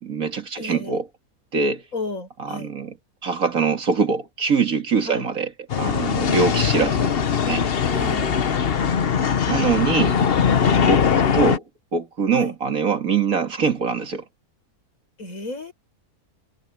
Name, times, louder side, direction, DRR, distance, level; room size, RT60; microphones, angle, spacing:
voice 1, 0.0-1.1 1.5-1.8 2.4-3.0 3.2-7.1 7.5-7.7 8.3-8.5 9.5-10.2 10.8-11.6 11.9-14.2, right 5 dB, 65° right, 2.4 m, -23 dB
voice 2, 0.6-1.0 1.9-2.7 5.1-5.2 7.9-8.3 12.3-12.5 15.2-15.7, left 2 dB, 65° left, 5.8 m, -32 dB
sound 1, 5.7-11.6, left 7 dB, 45° left, 1.0 m, -20 dB
omnidirectional pair, 1.6 m